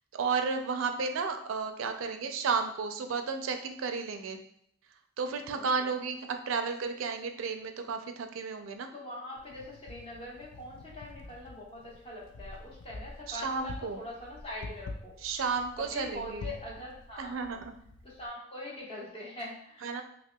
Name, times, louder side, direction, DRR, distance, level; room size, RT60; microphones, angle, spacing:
voice 1, 0.1-4.4 5.2-8.9 13.3-14.0 15.2-16.5 17.2-17.7 19.8-20.0, right 5 dB, 85° right, 6 dB, 0.4 m, -33 dB
voice 2, 5.5-5.9 8.9-15.1 15.8-17.6 18.0-19.9, left 1 dB, 30° left, -5 dB, 1.0 m, -43 dB
Wind, 9.4-18.3, left 2 dB, 65° left, 0.3 m, -47 dB
5.5 x 2.1 x 2.2 m, 0.70 s
head